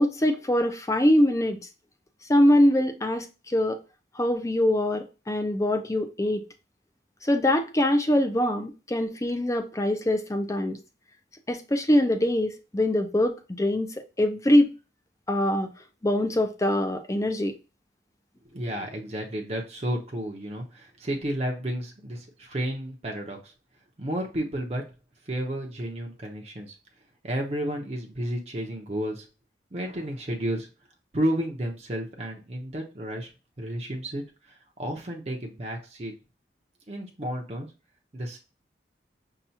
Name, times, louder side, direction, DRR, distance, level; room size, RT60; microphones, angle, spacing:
voice 1, 0.0-1.6 2.3-3.8 4.2-6.4 7.2-10.8 11.5-14.7 15.3-15.7 16.0-17.5, left 1 dB, 20° left, 0.5 m, -23 dB
voice 2, 18.4-23.5 24.0-24.9 25.3-26.8 27.2-29.3 29.7-30.7 31.1-33.3 33.6-36.2 36.9-37.7 38.1-38.4, right 1 dB, 35° right, 0.7 m, -32 dB
5.6 x 2.3 x 2.7 m
head